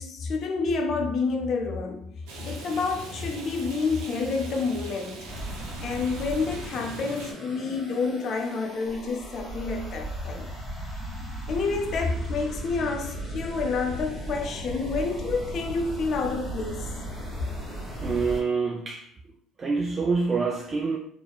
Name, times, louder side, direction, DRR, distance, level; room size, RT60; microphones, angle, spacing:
voice 1, 0.0-2.1 2.5-5.2 5.8-10.5 11.5-16.9, left 4 dB, 55° left, 0.5 m, -28 dB
Rain, 2.3-7.3, right 2 dB, 80° right, 0.6 m, -41 dB
sound 1, 5.3-18.4, right 1 dB, ahead, 1.3 m, -36 dB
voice 2, 18.0-19.1 19.6-21.0, right 4 dB, 35° right, 0.3 m, -26 dB
2.9 x 2.1 x 2.3 m
supercardioid pair, 75°, 0 cm